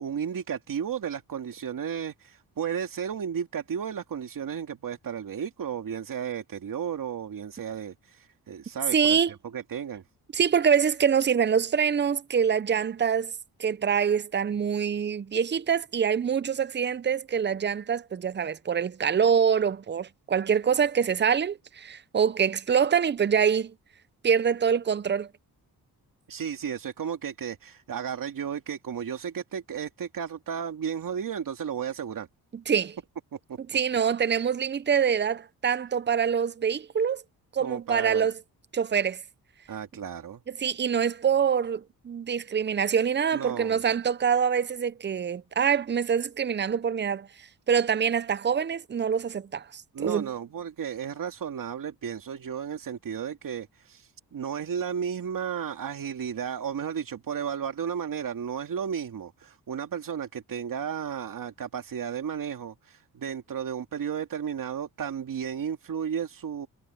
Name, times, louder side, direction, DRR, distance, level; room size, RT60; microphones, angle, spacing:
voice 1, 0.0-9.2 9.5-10.0 26.3-32.3 33.3-33.6 37.6-38.3 39.7-40.4 43.3-43.8 49.9-66.7, right 8 dB, 60° right, 2.3 m, -33 dB
voice 2, 8.9-9.3 10.3-13.3 13.6-23.7 24.2-25.3 32.7-33.0 33.7-37.2 37.5-38.3 38.7-39.2 40.5-47.3 47.7-50.3, right 7 dB, 30° right, 0.7 m, -25 dB
cardioid pair, 70°, 38 cm